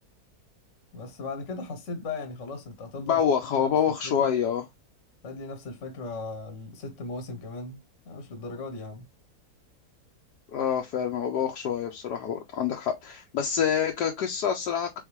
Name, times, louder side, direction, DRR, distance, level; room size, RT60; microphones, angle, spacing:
voice 1, 0.9-3.2 3.5-4.3 5.2-9.1, left 3 dB, 50° left, 1.3 m, -38 dB
voice 2, 3.0-4.7 10.5-15.0, left 8 dB, 85° left, 1.3 m, -26 dB
4.0 x 3.6 x 3.1 m
omnidirectional pair, 1.7 m